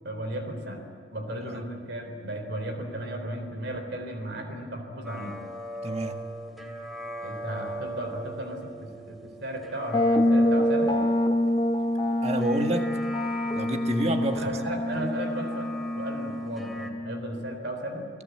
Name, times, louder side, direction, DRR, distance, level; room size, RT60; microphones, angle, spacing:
voice 1, 0.0-0.8 1.1-5.4 7.2-11.0 14.3-18.1, right 1 dB, 65° right, 3.6 m, -35 dB
sound 1, 5.0-16.9, right 1 dB, ahead, 2.8 m, -40 dB
voice 2, 5.8-6.2 12.2-13.0 13.5-14.5, right 2 dB, 35° right, 1.8 m, -29 dB
sound 2, 9.9-17.6, left 1 dB, 25° left, 1.4 m, -26 dB
29.5 x 18.5 x 8.0 m
head